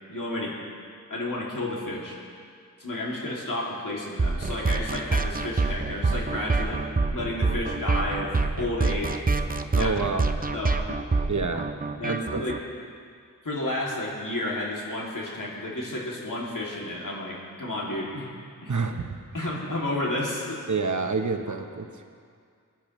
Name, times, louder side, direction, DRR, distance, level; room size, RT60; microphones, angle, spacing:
voice 1, 0.1-0.6 1.1-2.2 2.8-6.8 7.1-9.3 9.7-9.9 10.5-11.3 12.0-12.5 13.4-18.3 18.6-18.9 19.3-20.6, left 1 dB, 70° left, -4 dB, 2.7 m, -31 dB
sound 1, 4.2-12.6, right 3 dB, 25° right, 0.6 m, -26 dB
voice 2, 9.7-10.3 11.3-11.7 12.1-12.4 18.7-19.0 20.7-22.2, right 4 dB, 60° right, 5 dB, 1.0 m, -28 dB
21.5 x 10.5 x 3.2 m, 2.2 s
wide cardioid pair, 60°, 33 cm